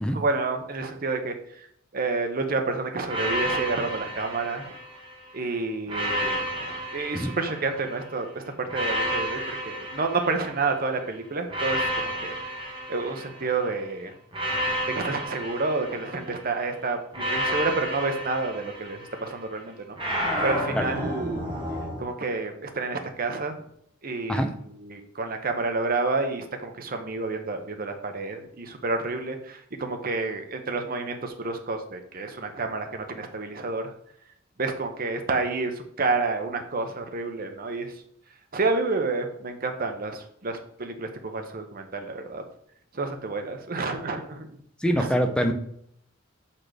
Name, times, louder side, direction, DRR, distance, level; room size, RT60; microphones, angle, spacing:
voice 1, 0.1-1.7 1.9-4.7 5.3-12.6 12.9-14.1 14.9-21.5 22.0-23.7 24.0-33.9 34.6-37.9 38.5-42.4 42.9-44.6 45.0-45.2, right 3 dB, 45° right, 5 dB, 0.9 m, -29 dB
sound 1, 3.1-5.2 5.9-8.0 8.7-10.9 11.5-13.6 14.3-16.5 17.1-19.3 20.0-22.0, equal, 25° right, 1.5 m, -31 dB
voice 2, 44.8-45.5, equal, 5° left, 5 dB, 0.6 m, -24 dB
6.1 x 4.3 x 5.0 m, 0.70 s
head